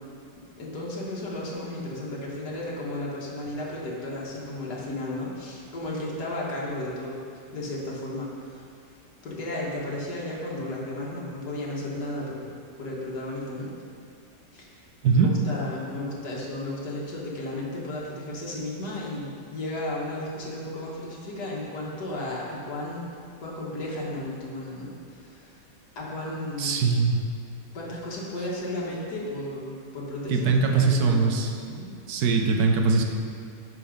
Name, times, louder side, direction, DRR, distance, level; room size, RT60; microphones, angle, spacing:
voice 1, 0.6-7.2 7.5-8.7 9.2-13.7 14.5-14.9 15.1-23.1 23.4-25.6 26.0-26.8 27.7-31.3 31.7-31.9, left 1 dB, 65° left, -5 dB, 1.9 m, -34 dB
voice 2, 26.6-27.2 30.3-31.5 32.1-33.0, right 4 dB, 65° right, 3 dB, 1.2 m, -21 dB
11.0 x 4.5 x 5.1 m, 2.3 s
omnidirectional pair, 1.9 m